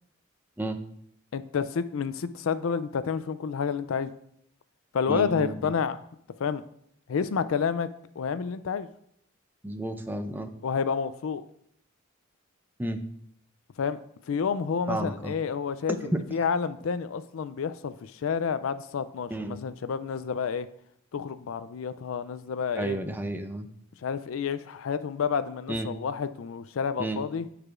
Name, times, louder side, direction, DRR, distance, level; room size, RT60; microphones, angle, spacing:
voice 1, 1.3-4.1 4.9-6.0 6.4-6.6 7.1-7.9 8.2-8.9 10.6-11.4 13.8-14.0 14.3-20.7 21.1-23.0 24.0-27.5, left 6 dB, 70° left, 13 dB, 0.4 m, -29 dB
voice 2, 5.1-5.5 9.6-10.5 12.8-13.0 14.9-15.3 16.0-16.2 19.3-19.6 22.8-23.7 25.7-25.9 27.0-27.2, right 1 dB, 10° right, 8 dB, 0.5 m, -31 dB
13.5 x 4.9 x 2.5 m, 0.70 s
head